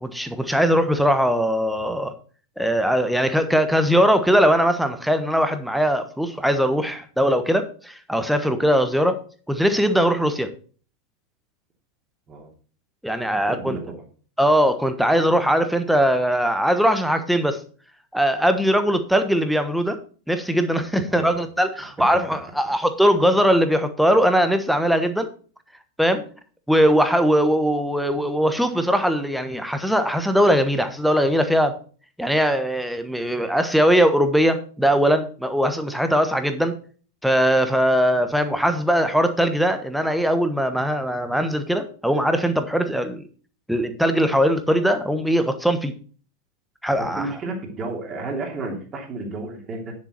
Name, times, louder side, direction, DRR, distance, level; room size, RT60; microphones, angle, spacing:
voice 1, 0.0-2.1 2.6-9.2 9.5-10.5 13.0-13.8 14.4-17.6 18.1-20.0 20.3-25.3 26.0-26.2 26.7-31.8 32.2-36.7 37.2-43.2 43.7-45.9 46.8-47.3, equal, ahead, 9 dB, 1.2 m, -20 dB
voice 2, 13.5-14.0 21.1-21.3 22.0-22.1 47.0-49.9, right 3 dB, 25° right, 1 dB, 2.9 m, -32 dB
9.8 x 7.3 x 4.3 m, 0.41 s
figure-of-eight pair, 90°, 0 cm